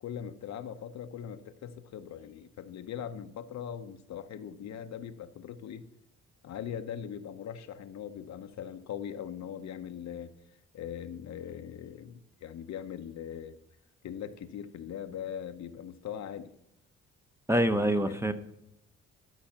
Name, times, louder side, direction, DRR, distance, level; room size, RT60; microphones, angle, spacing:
voice 1, 0.0-5.9 6.4-10.3 10.7-13.6 14.0-16.5 17.7-18.2, left 9 dB, 65° left, 9 dB, 0.8 m, -41 dB
voice 2, 17.5-18.3, right 1 dB, 10° right, 9 dB, 0.8 m, -25 dB
13.5 x 6.3 x 5.7 m, 0.84 s
cardioid pair, 90°, 30 cm